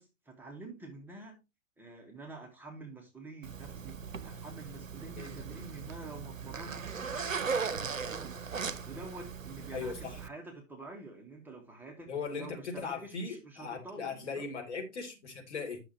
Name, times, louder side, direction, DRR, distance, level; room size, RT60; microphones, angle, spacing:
voice 1, 0.0-1.4 1.8-8.4 8.8-12.1 12.4-14.4, right 2 dB, 5° right, 1.6 m, -48 dB
Zipper (clothing), 3.4-10.3, right 5 dB, 80° right, 0.8 m, -38 dB
voice 2, 9.7-10.2 12.1-15.8, left 5 dB, 60° left, 3.3 m, -39 dB
10.0 x 6.6 x 2.9 m
figure-of-eight pair, 105°, 39 cm